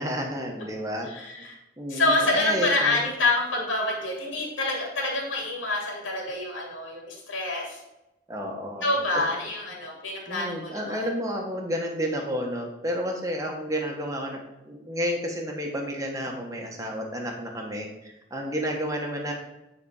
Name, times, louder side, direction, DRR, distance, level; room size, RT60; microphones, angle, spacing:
voice 1, 0.0-1.1 1.8-3.0 8.3-9.0 10.3-19.3, equal, 15° right, 1 dB, 1.3 m, -31 dB
voice 2, 1.1-1.6 1.9-7.8 8.8-11.1, left 2 dB, 85° left, -1 dB, 2.6 m, -27 dB
9.5 x 4.2 x 4.9 m, 0.96 s
head